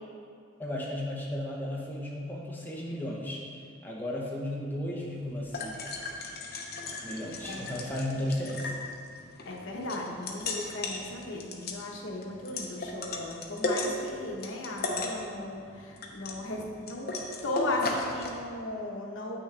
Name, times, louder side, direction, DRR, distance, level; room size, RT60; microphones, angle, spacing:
voice 1, 0.6-3.4 3.8-5.8 7.0-8.8, left 1 dB, 10° left, -4 dB, 0.9 m, -34 dB
sound 1, 5.0-18.3, left 2 dB, 50° left, 0.8 m, -37 dB
voice 2, 7.5-7.8 9.4-17.1 17.4-19.4, left 2 dB, 70° left, -1 dB, 1.1 m, -36 dB
8.0 x 6.2 x 3.3 m, 2.3 s
head